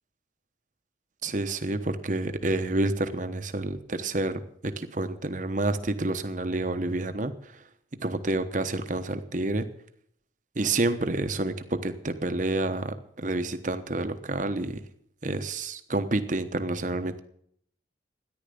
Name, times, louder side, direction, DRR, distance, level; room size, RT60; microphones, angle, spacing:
voice 1, 1.2-7.3 8.0-9.7 10.6-14.8 15.2-17.2, right 2 dB, 40° right, 9 dB, 1.1 m, -29 dB
14.0 x 10.5 x 6.9 m, 0.67 s
head